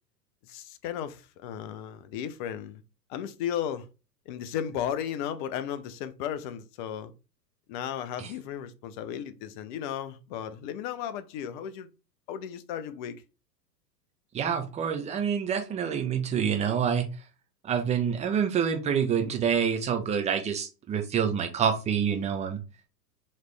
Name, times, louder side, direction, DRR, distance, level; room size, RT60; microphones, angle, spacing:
voice 1, 0.4-2.8 3.1-3.9 4.3-7.1 7.7-11.9 12.3-13.2, left 9 dB, 30° left, 0.5 m, -35 dB
voice 2, 14.3-17.1 17.6-22.6, right 7 dB, 15° right, 0.6 m, -27 dB
4.0 x 3.1 x 3.2 m
hypercardioid pair, 105°, 50 cm